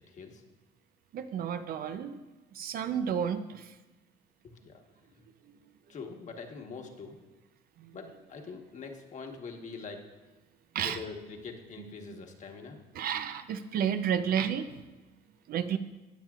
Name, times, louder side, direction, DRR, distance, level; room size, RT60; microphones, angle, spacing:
voice 1, 0.1-0.4 2.9-3.0 4.6-4.8 5.1-5.2 5.9-7.2 7.9-10.1 10.8-12.8, left 4 dB, 45° left, 3 dB, 1.4 m, -43 dB
voice 2, 1.1-2.2 2.5-3.8 5.4-5.5 7.8-8.0 10.7-11.0 11.8-11.9 12.9-14.8 15.5-15.8, right 8 dB, 60° right, 10 dB, 0.6 m, -32 dB
19.0 x 7.4 x 2.4 m, 1.1 s
cardioid pair, 110°, 17 cm